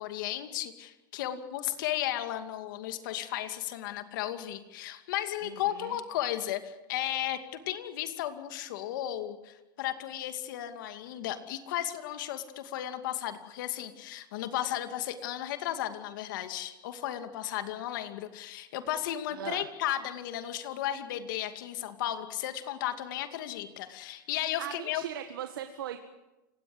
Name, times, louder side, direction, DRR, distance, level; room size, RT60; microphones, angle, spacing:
voice 1, 0.0-7.4 7.7-25.0, left 12 dB, 65° left, 8 dB, 2.5 m, -34 dB
voice 2, 5.4-6.0 19.3-19.7 24.6-26.0, right 11 dB, 90° right, 7 dB, 1.8 m, -39 dB
29.5 x 17.5 x 8.0 m, 1.0 s
supercardioid pair, 145°, 11 cm